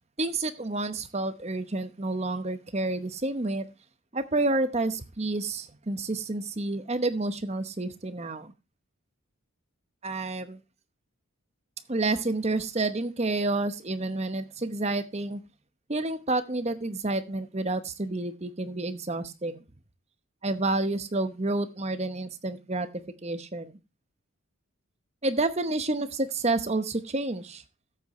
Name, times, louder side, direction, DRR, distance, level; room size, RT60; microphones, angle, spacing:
voice 1, 0.2-3.6 4.1-8.5 10.0-10.6 11.9-15.4 15.9-19.5 20.4-22.9 23.2-23.8 25.2-27.6, right 2 dB, 30° right, 0.9 m, -29 dB
13.5 x 8.4 x 3.1 m
head